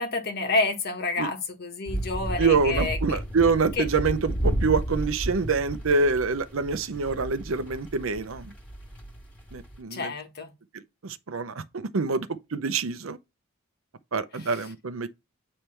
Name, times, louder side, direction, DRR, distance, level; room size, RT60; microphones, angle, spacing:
voice 1, 0.0-3.2 3.8-3.9 9.9-10.5 14.4-14.5, left 3 dB, 50° left, 1.5 m, -29 dB
sound 1, 1.9-9.8, right 1 dB, 5° left, 2.0 m, -32 dB
voice 2, 2.4-8.5 9.5-10.1 11.0-13.2 14.1-15.1, right 4 dB, 75° right, 0.7 m, -26 dB
8.6 x 3.3 x 4.4 m
head